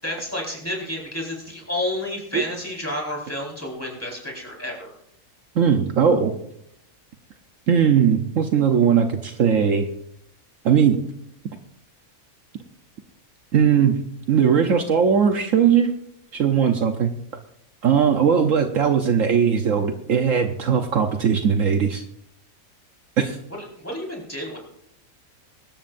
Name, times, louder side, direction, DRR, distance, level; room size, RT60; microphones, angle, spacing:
voice 1, 0.0-4.9 23.6-24.6, left 1 dB, 10° left, -2 dB, 4.6 m, -30 dB
voice 2, 5.6-6.3 7.7-9.9 10.6-11.0 13.5-14.0 14.3-16.0 16.3-17.1 17.8-22.0 23.2-23.4, right 7 dB, 65° right, 6 dB, 1.2 m, -19 dB
24.0 x 13.0 x 2.6 m, 0.75 s
omnidirectional pair, 1.5 m